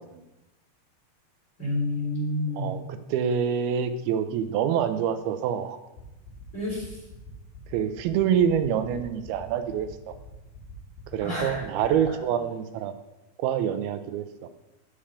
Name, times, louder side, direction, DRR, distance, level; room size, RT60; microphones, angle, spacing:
voice 1, 1.6-2.8 6.5-7.0 11.2-11.6, left 1 dB, 20° left, -5 dB, 3.5 m, -29 dB
voice 2, 3.1-5.8 7.7-10.2 11.1-13.0 13.4-14.3, right 8 dB, 90° right, 9 dB, 2.6 m, -26 dB
sound 1, 6.0-12.0, left 7 dB, 75° left, 3.8 m, -45 dB
8.6 x 7.2 x 4.9 m, 0.96 s
omnidirectional pair, 4.3 m